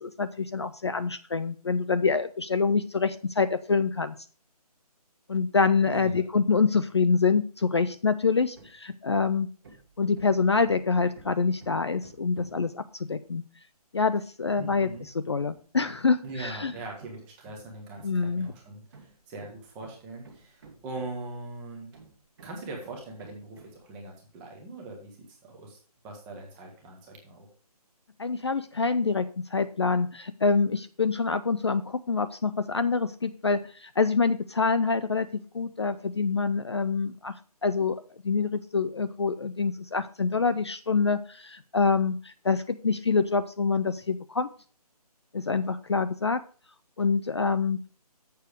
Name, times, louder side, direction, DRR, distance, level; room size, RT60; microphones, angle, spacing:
voice 1, 0.0-4.1 5.3-9.5 10.0-13.4 13.9-16.7 18.0-18.5 28.2-37.3 37.6-44.5 45.3-46.4 47.0-47.8, left 4 dB, 45° left, 11 dB, 0.4 m, -26 dB
voice 2, 5.9-6.2 14.6-15.1 16.2-21.9 22.4-25.8 26.0-27.5, right 2 dB, 5° right, 0 dB, 0.8 m, -41 dB
Hammer, 8.5-8.8 9.1-12.7 14.4-21.4 21.9-23.8, right 4 dB, 35° right, 1.4 m, -53 dB
6.8 x 6.6 x 4.8 m, 0.40 s
figure-of-eight pair, 165°, 20 cm